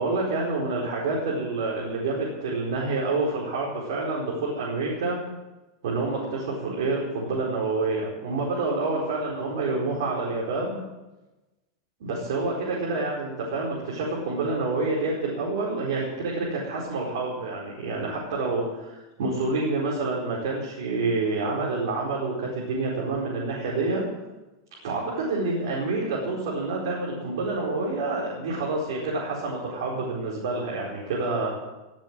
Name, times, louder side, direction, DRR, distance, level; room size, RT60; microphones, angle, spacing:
voice 1, 0.0-5.2 5.8-10.8 12.0-24.0 24.8-31.6, right 3 dB, 70° right, -4 dB, 4.6 m, -28 dB
18.0 x 7.6 x 8.9 m, 1.1 s
supercardioid pair, 175°, 2 cm